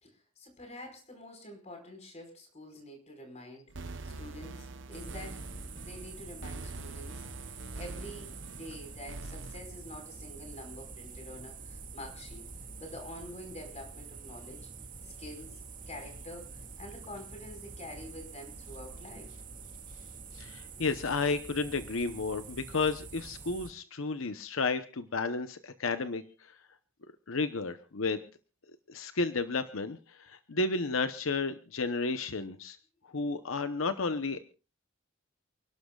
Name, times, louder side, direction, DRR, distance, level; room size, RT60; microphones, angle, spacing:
voice 1, 0.0-5.5 5.8-12.5 12.8-14.7 15.0-19.3, left 1 dB, 35° left, 4 dB, 5.0 m, -47 dB
sound 1, 3.7-9.6, right 2 dB, 65° right, 0.9 m, -44 dB
sound 2, 4.9-23.7, right 4 dB, 40° right, 2.3 m, -46 dB
voice 2, 20.3-26.2 27.3-28.2 28.9-32.8 33.1-34.5, left 3 dB, 85° left, 10 dB, 0.9 m, -32 dB
29.5 x 12.0 x 2.4 m, 0.34 s
head